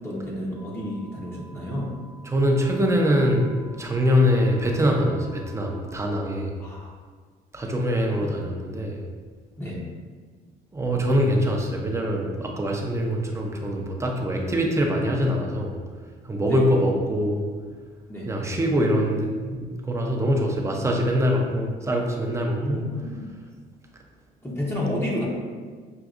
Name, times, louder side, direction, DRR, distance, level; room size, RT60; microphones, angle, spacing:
voice 1, 0.0-1.9 6.6-6.9 8.2-8.4 9.6-9.8 16.4-16.6 18.1-18.3 22.6-23.3 24.4-25.3, left 1 dB, 15° left, -5 dB, 0.8 m, -30 dB
sound 1, 0.5-5.8, right 1 dB, 80° right, 0.7 m, -51 dB
voice 2, 2.2-6.5 7.5-9.0 10.7-15.8 16.2-17.4 18.2-22.8, equal, 15° right, 0 dB, 0.6 m, -23 dB
6.0 x 2.5 x 2.5 m, 1.5 s
cardioid pair, 110°, 17 cm